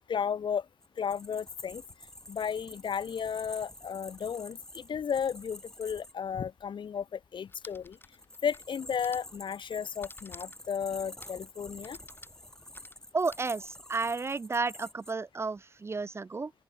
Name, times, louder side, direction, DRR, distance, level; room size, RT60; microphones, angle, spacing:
voice 1, 0.1-0.6 1.0-1.8 2.3-8.0 8.4-12.0, left 7 dB, 70° left, 0.6 m, -33 dB
sound 1, 0.8-6.1 8.0-15.1, left 1 dB, 5° left, 3.0 m, -49 dB
sound 2, 7.5-8.7 9.0-9.3 10.0-10.7 11.2-11.5 11.8-13.5, left 2 dB, 25° left, 2.8 m, -52 dB
voice 2, 13.1-16.5, right 4 dB, 30° right, 0.4 m, -32 dB
open air
wide cardioid pair, 115°, 9 cm